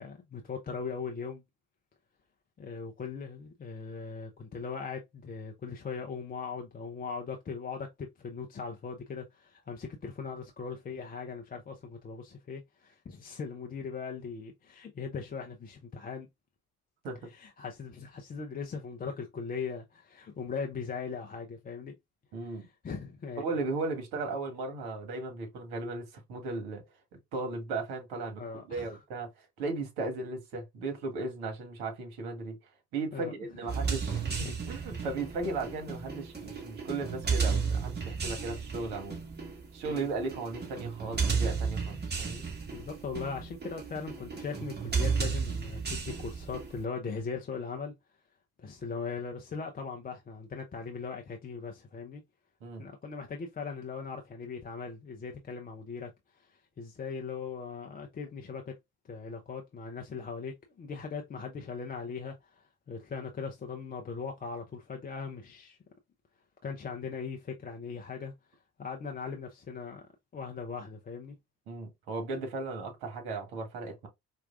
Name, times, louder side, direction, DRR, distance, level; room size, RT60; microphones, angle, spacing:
voice 1, 0.0-1.4 2.6-16.3 17.3-22.0 22.6-23.5 28.4-29.0 33.1-33.3 33.7-33.8 34.4-34.5 39.9-40.1 42.7-47.9 48.6-52.2 52.8-58.8 59.1-65.8 66.6-68.3 68.8-70.0 70.3-71.4, left 5 dB, 20° left, 0.6 m, -39 dB
voice 2, 22.3-22.7 23.4-26.8 27.3-28.4 28.7-32.6 32.9-39.2 39.7-42.4 52.6-52.8 71.7-74.1, right 3 dB, 55° right, 1.4 m, -36 dB
sound 1, 33.7-46.8, right 5 dB, 20° right, 1.5 m, -33 dB
4.5 x 2.4 x 2.4 m
figure-of-eight pair, 55°, 44 cm